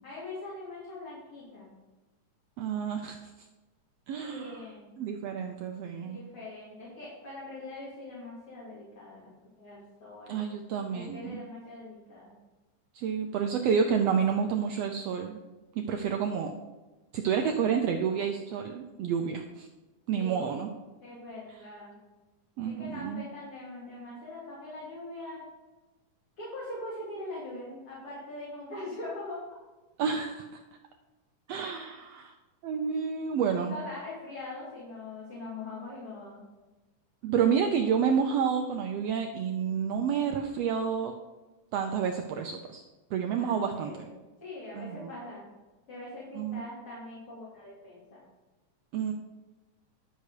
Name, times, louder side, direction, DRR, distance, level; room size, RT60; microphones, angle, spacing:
voice 1, 0.0-1.7 4.2-5.0 6.0-10.4 10.9-12.3 20.2-20.6 21.0-22.0 22.6-25.4 26.4-29.4 33.6-36.4 43.4-44.1 44.4-45.5 45.9-48.2, left 2 dB, 45° left, -8 dB, 3.6 m, -42 dB
voice 2, 2.6-3.3 4.1-4.7 5.0-6.2 10.3-11.4 12.9-15.4 15.7-16.5 17.1-19.7 20.1-20.7 22.6-23.2 30.0-30.6 31.5-32.3 32.6-33.8 37.2-41.1 41.7-42.8 43.1-44.1 44.7-45.1 46.3-46.6 48.9-49.1, right 7 dB, 85° right, 4 dB, 1.4 m, -29 dB
11.0 x 6.9 x 4.8 m, 1.1 s
omnidirectional pair, 3.7 m